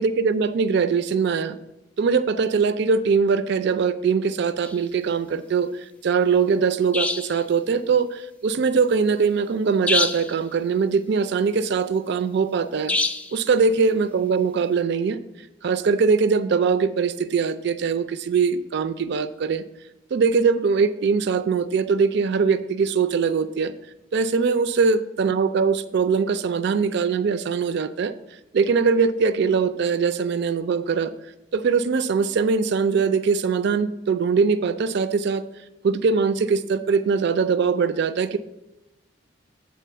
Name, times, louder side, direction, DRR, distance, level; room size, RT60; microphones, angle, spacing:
voice 1, 0.0-1.6 2.0-13.0 13.3-15.2 15.6-19.6 20.1-23.7 24.1-28.1 28.5-31.1 31.5-35.4 35.8-38.4, right 5 dB, 65° right, 13 dB, 0.4 m, -22 dB
sound 1, 4.6-4.8 6.9-7.4 9.9-10.4 12.9-13.4, left 2 dB, 5° left, 0.3 m, -24 dB
8.3 x 3.8 x 6.7 m, 0.95 s
head